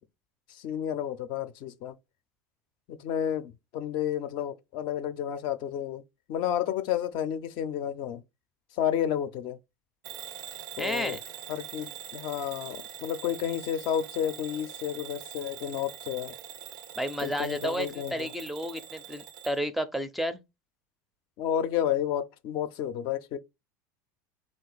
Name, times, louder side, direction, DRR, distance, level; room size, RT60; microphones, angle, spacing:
voice 1, 0.5-1.9 2.9-6.0 6.3-8.2 8.7-9.6 10.8-11.2 11.5-16.3 17.2-18.3 21.4-23.4, left 10 dB, 55° left, 0.5 m, -31 dB
Bell / Alarm, 10.0-19.6, right 11 dB, 75° right, 0.4 m, -43 dB
voice 2, 10.8-11.2 17.0-20.4, equal, ahead, 0.4 m, -32 dB
3.7 x 2.4 x 3.9 m
hypercardioid pair, 95°, 10 cm